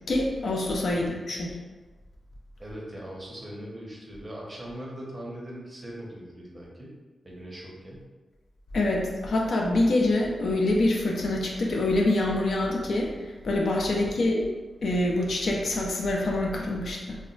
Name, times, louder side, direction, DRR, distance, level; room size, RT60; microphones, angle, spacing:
voice 1, 0.1-1.5 8.7-13.1 13.4-14.5 14.8-17.2, left 2 dB, 65° left, -1 dB, 0.4 m, -25 dB
voice 2, 2.6-6.9 7.2-8.1 13.9-14.2, equal, 20° right, -4 dB, 0.6 m, -40 dB
2.2 x 2.1 x 3.7 m, 1.2 s
wide cardioid pair, 140°, 0 cm